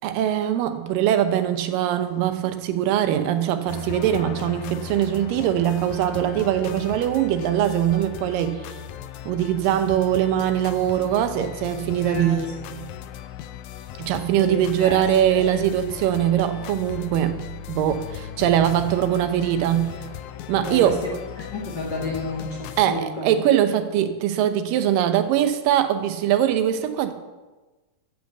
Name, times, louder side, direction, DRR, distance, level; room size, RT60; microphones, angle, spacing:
voice 1, 0.0-8.7 9.3-12.9 14.0-19.9 20.5-21.0 22.8-27.1, right 11 dB, 75° right, 9 dB, 2.4 m, -22 dB
sound 1, 3.7-22.9, left 10 dB, 90° left, 1.7 m, -37 dB
voice 2, 14.4-15.0 15.3-15.4 20.6-20.9 21.5-23.3, left 2 dB, 65° left, -3 dB, 1.0 m, -31 dB
13.5 x 5.7 x 7.9 m, 1.2 s
omnidirectional pair, 4.2 m